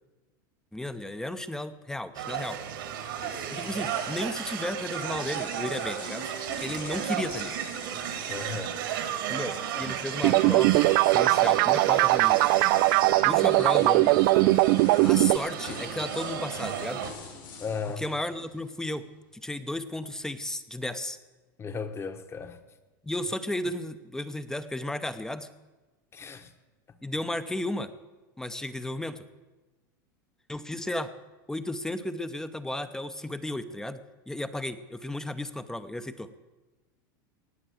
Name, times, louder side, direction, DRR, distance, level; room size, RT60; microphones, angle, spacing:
voice 1, 0.7-2.6 3.5-7.6 9.3-10.8 11.1-12.4 13.2-14.2 15.0-17.0 18.0-19.1 19.3-21.2 23.0-25.5 27.0-27.9 28.4-29.2 30.5-31.1 31.5-36.3, left 1 dB, 5° left, 0.8 m, -34 dB
sound 1, 2.1-17.1, right 9 dB, 80° right, 2.3 m, -33 dB
sound 2, 2.5-9.7 10.0-10.2 11.3-11.4 11.9-19.0, left 5 dB, 80° left, 6.8 m, -47 dB
voice 2, 8.3-8.7 9.7-9.9 17.6-18.0 21.6-22.6 26.1-26.5, left 5 dB, 20° left, 1.2 m, -35 dB
sound 3, 10.2-15.4, right 20 dB, 55° right, 0.4 m, -21 dB
18.0 x 7.7 x 7.8 m
supercardioid pair, 115°, 11 cm